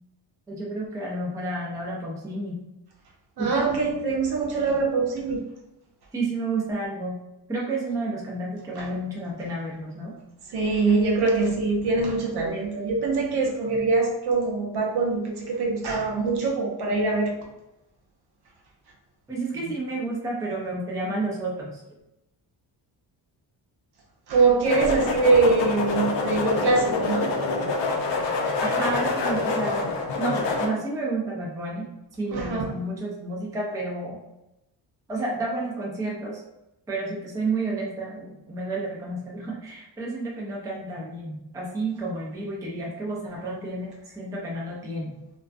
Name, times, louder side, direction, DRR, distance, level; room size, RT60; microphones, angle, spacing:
voice 1, 0.5-2.6 3.4-3.7 6.1-7.2 7.5-10.2 19.3-21.8 28.6-29.9 30.2-34.2 35.1-36.4 36.9-45.2, right 2 dB, 10° right, -4 dB, 0.4 m, -31 dB
voice 2, 3.4-5.4 8.8-8.9 10.5-17.4 24.3-27.3 32.3-32.7, right 3 dB, 60° right, 1 dB, 0.6 m, -23 dB
sound 1, 24.6-30.7, left 3 dB, 70° left, 0.6 m, -26 dB
2.4 x 2.2 x 2.4 m, 0.92 s
wide cardioid pair, 150°, 45 cm